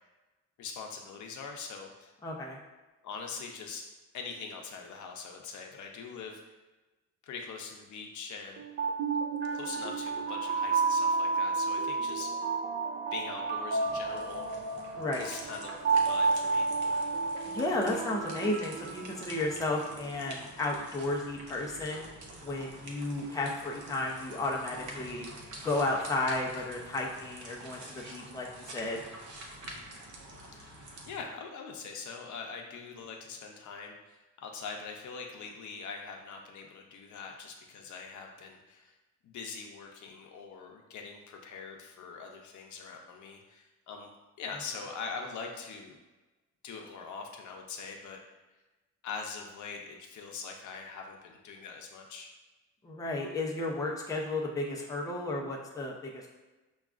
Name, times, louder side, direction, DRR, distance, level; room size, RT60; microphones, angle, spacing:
voice 1, 0.6-2.1 3.0-3.8 4.1-6.4 7.2-8.6 9.5-12.3 13.1-14.5 15.2-16.7 29.6-29.8 30.5-30.8 31.1-38.9 39.2-44.1 44.4-46.0 46.6-48.2 49.0-52.3, left 5 dB, 85° left, 2 dB, 0.6 m, -43 dB
voice 2, 2.2-2.6 14.9-15.3 17.5-22.1 22.4-25.3 25.6-29.0 52.8-56.3, left 2 dB, 10° left, -2 dB, 0.4 m, -33 dB
sound 1, 8.6-19.7, right 4 dB, 45° right, 0.4 m, -31 dB
sound 2, 13.8-31.2, right 1 dB, 85° right, 0.7 m, -47 dB
6.1 x 2.3 x 2.4 m, 1.1 s
wide cardioid pair, 155°, 29 cm